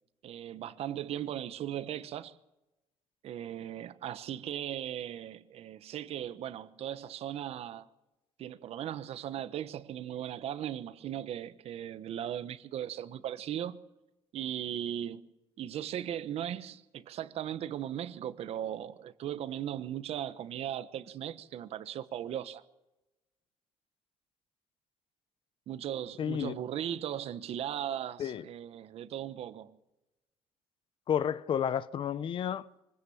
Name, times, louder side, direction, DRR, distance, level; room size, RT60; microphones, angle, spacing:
voice 1, 0.2-2.4 3.2-7.9 8.4-13.8 14.3-15.2 15.6-22.6 25.7-29.8, right 10 dB, 65° right, 1.1 m, -38 dB
voice 2, 26.2-26.6 28.2-28.4 31.1-32.7, left 9 dB, 50° left, 0.8 m, -31 dB
24.0 x 16.5 x 7.2 m
cardioid pair, 125°, 11 cm